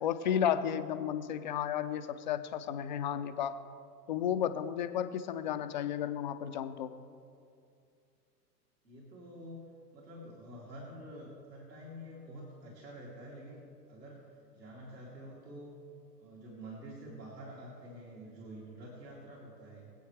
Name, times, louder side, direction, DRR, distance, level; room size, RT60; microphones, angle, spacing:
voice 1, 0.0-3.6 4.1-6.9, left 9 dB, 30° left, 10 dB, 0.4 m, -33 dB
voice 2, 8.8-9.7 9.9-13.6 13.9-15.8 16.2-19.9, equal, 75° right, -5 dB, 2.8 m, -48 dB
23.0 x 8.3 x 3.2 m, 2.4 s
figure-of-eight pair, 110°, 50 cm